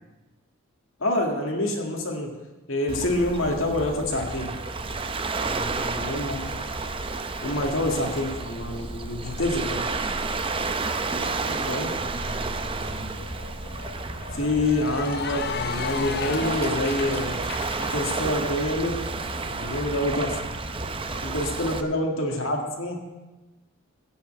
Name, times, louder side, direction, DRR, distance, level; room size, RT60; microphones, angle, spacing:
voice 1, 1.0-2.3 2.7-4.5 6.0-6.4 7.4-9.9 11.7-11.9 14.3-17.4 17.8-19.0 19.4-20.4 21.2-23.0, left 1 dB, 65° left, 1 dB, 2.0 m, -27 dB
Waves surf, 2.9-21.8, right 3 dB, 25° right, 0.6 m, -31 dB
voice 2, 5.4-6.0 8.5-9.3 11.0-13.2 20.6-21.2 21.8-21.9, right 1 dB, 5° right, -4 dB, 3.5 m, -41 dB
Cheering / Applause, 12.7-18.0, left 6 dB, 50° left, 0.6 m, -35 dB
16.5 x 5.8 x 8.8 m, 1.1 s
head